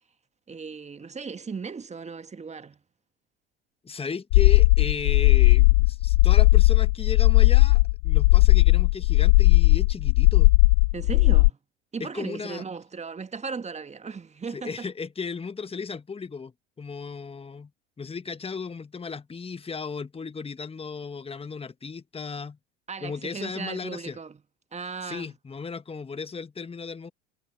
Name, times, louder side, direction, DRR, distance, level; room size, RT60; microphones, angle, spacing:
voice 1, 0.5-2.8 10.9-11.6 11.9-14.9 22.9-24.4 24.7-25.3, right 5 dB, 20° right, 1.7 m, -36 dB
voice 2, 3.8-10.5 12.0-12.6 14.5-17.7 18.0-22.6 23.0-24.2 25.0-27.1, left 5 dB, 15° left, 1.5 m, -35 dB
sound 1, 4.3-11.5, left 24 dB, 65° left, 0.8 m, -17 dB
figure-of-eight pair, 70°, 34 cm